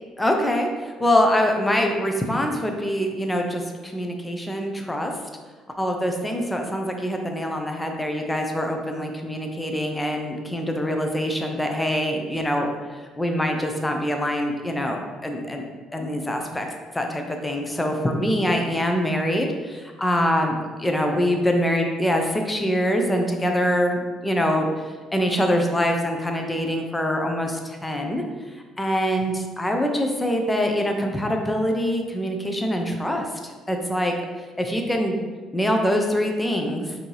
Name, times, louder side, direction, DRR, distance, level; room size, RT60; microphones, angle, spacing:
voice 1, 0.2-5.1 5.8-12.7 13.2-15.6 15.9-16.7 16.9-24.7 25.1-28.2 28.8-34.1 34.6-35.2 35.5-36.9, equal, 10° left, 3 dB, 0.5 m, -24 dB
4.3 x 2.7 x 3.1 m, 1.4 s
cardioid pair, 90°, 0 cm